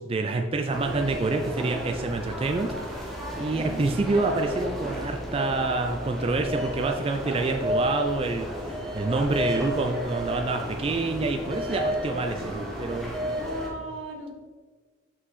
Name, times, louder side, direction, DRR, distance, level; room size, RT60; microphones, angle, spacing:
voice 1, 0.0-13.1, right 3 dB, 30° right, 4 dB, 0.3 m, -27 dB
sound 1, 0.7-13.7, equal, ahead, 0.9 m, -32 dB
voice 2, 3.5-4.0 13.0-14.3, right 1 dB, 80° right, 2 dB, 1.1 m, -38 dB
5.6 x 5.4 x 4.1 m, 1.4 s
head